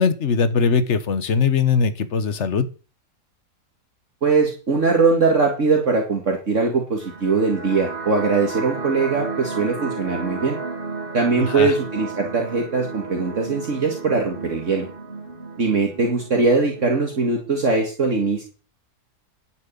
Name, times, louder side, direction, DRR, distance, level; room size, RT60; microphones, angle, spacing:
voice 1, 0.0-2.7 11.4-11.7, left 5 dB, 45° left, 13 dB, 1.4 m, -20 dB
voice 2, 4.2-10.6 11.1-14.9 15.6-18.4, right 4 dB, 50° right, 1 dB, 2.3 m, -21 dB
sound 1, 6.9-17.9, right 4 dB, 35° right, 2.6 m, -33 dB
11.0 x 7.6 x 8.6 m, 0.37 s
omnidirectional pair, 1.7 m